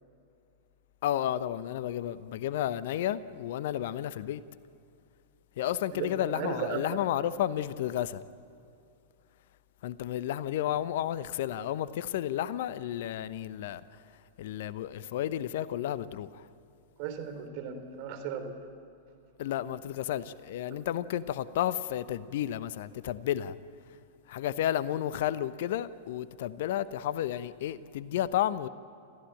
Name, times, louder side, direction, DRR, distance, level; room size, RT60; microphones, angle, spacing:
voice 1, 1.0-4.4 5.6-8.2 9.8-16.5 19.4-23.6 24.3-28.7, left 11 dB, 60° left, 16 dB, 0.8 m, -32 dB
voice 2, 5.9-7.0 17.0-18.5, right 7 dB, 50° right, 6 dB, 3.4 m, -36 dB
29.0 x 14.5 x 9.0 m, 2.6 s
figure-of-eight pair, 100°, 0 cm